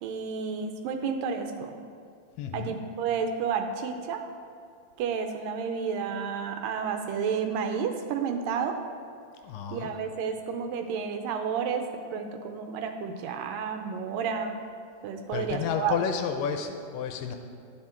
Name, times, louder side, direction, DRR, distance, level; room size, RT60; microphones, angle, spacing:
voice 1, 0.0-1.8 2.5-4.2 5.0-8.8 9.7-11.9 12.1-14.6 15.0-15.9, right 6 dB, 75° right, 6 dB, 2.3 m, -31 dB
voice 2, 2.4-2.8 9.4-10.0 15.3-17.4, left 7 dB, 80° left, 6 dB, 2.2 m, -31 dB
11.5 x 9.7 x 4.4 m, 2.4 s
omnidirectional pair, 4.2 m